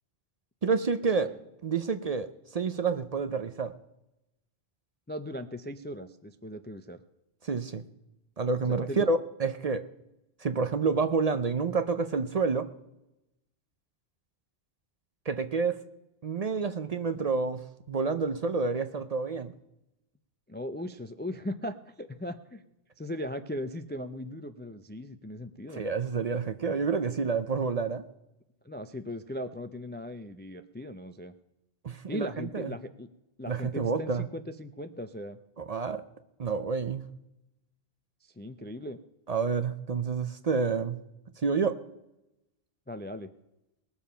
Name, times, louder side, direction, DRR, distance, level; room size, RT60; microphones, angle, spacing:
voice 1, 0.6-1.3 1.6-2.3 2.5-3.7 7.4-7.8 8.4-9.8 10.4-12.7 15.3-15.8 16.2-19.5 25.7-28.0 31.8-32.7 33.5-34.3 35.6-36.0 36.4-37.1 39.3-41.0 41.4-41.8, right 4 dB, 45° right, 10 dB, 0.6 m, -29 dB
voice 2, 5.1-7.0 8.7-9.1 20.5-22.6 23.0-25.9 28.6-31.3 32.1-33.1 33.4-35.4 38.2-39.0 42.9-43.3, left 1 dB, 15° left, 8 dB, 0.3 m, -38 dB
20.0 x 7.2 x 5.6 m, 0.92 s
omnidirectional pair, 1.1 m